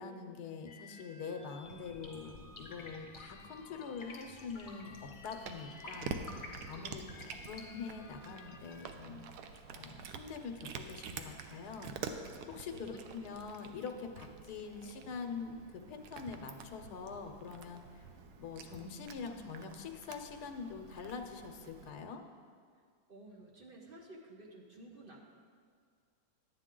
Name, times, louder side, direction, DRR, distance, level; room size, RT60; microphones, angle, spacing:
voice 1, 0.0-9.3 9.7-11.9 12.5-17.8 18.4-22.2, left 5 dB, 80° left, 4 dB, 1.2 m, -44 dB
sound 1, 0.6-8.9, left 4 dB, 50° left, 0.6 m, -57 dB
sound 2, 1.6-7.8, left 2 dB, 30° left, 1.4 m, -52 dB
Cat, 4.8-21.9, right 5 dB, 85° right, 1.2 m, -48 dB
voice 2, 6.7-7.3 12.7-13.3 23.1-25.2, right 1 dB, 45° right, -1 dB, 0.9 m, -54 dB
10.5 x 8.8 x 3.7 m, 2.1 s
omnidirectional pair, 1.7 m